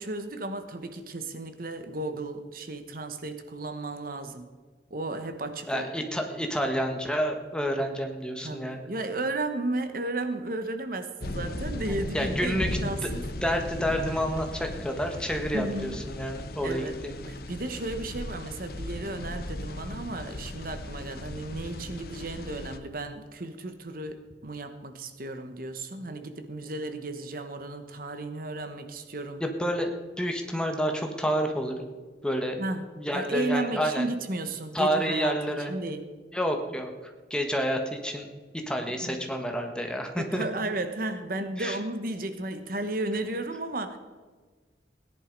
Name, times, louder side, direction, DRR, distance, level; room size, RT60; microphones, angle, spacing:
voice 1, 0.0-4.5 4.9-6.1 8.4-13.2 15.5-16.0 16.6-17.0 17.3-29.4 32.6-32.9 33.1-36.1 39.0-39.2 40.2-44.0, right 2 dB, 50° right, 9 dB, 1.1 m, -34 dB
voice 2, 5.7-8.9 12.1-12.7 13.4-17.3 29.4-29.9 30.2-31.8 32.2-32.6 32.9-34.1 34.7-35.7 36.3-36.9 37.3-38.3 38.5-40.4 41.6-41.8, equal, 5° left, 4 dB, 1.4 m, -29 dB
sound 1, 11.2-22.8, left 1 dB, 55° left, 0.9 m, -37 dB
17.5 x 10.5 x 5.2 m, 1.4 s
head